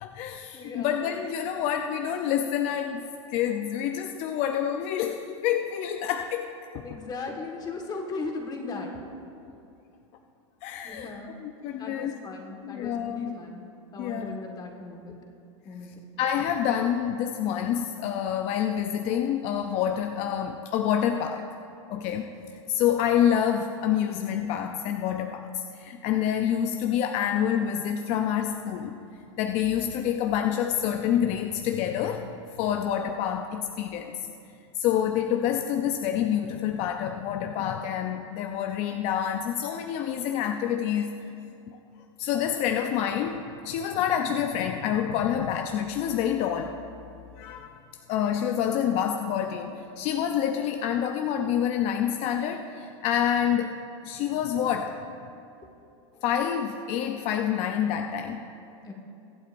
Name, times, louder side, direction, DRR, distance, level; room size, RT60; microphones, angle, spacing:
voice 1, 0.0-3.0 3.3-6.5 6.7-6.9 10.6-11.1 11.4-12.1 12.6-13.3 14.0-14.4 16.2-21.4 21.9-22.3 22.7-29.0 29.4-34.2 34.7-41.2 41.7-41.8 42.2-46.8 47.4-47.8 48.1-53.7 54.0-55.0 56.2-58.4, left 9 dB, 45° left, 5 dB, 0.6 m, -27 dB
voice 2, 0.5-0.9 6.8-9.2 10.8-11.3 11.8-13.6 13.9-15.2 15.7-15.9 56.1-56.2 58.9-59.0, left 3 dB, 25° left, 2 dB, 1.7 m, -37 dB
22.5 x 8.6 x 2.6 m, 2.6 s
hypercardioid pair, 120°, 16 cm